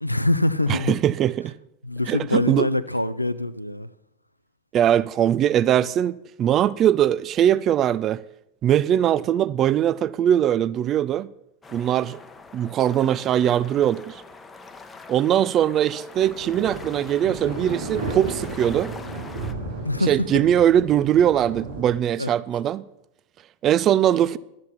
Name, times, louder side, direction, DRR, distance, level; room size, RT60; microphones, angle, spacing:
voice 1, 0.0-1.0 1.8-3.9 19.8-20.5 22.2-22.3, left 2 dB, 85° left, 0.4 m, -24 dB
voice 2, 0.7-1.5 2.1-2.7 4.7-8.2 8.6-11.3 11.7-12.2 12.5-14.2 15.1-18.9 20.1-22.8 23.6-24.4, right 10 dB, 30° right, 0.3 m, -21 dB
sound 1, 11.6-19.5, left 4 dB, 15° left, 0.8 m, -44 dB
sound 2, 16.1-21.8, right 2 dB, 70° right, 3.0 m, -34 dB
11.5 x 7.5 x 5.8 m
figure-of-eight pair, 90°, 0 cm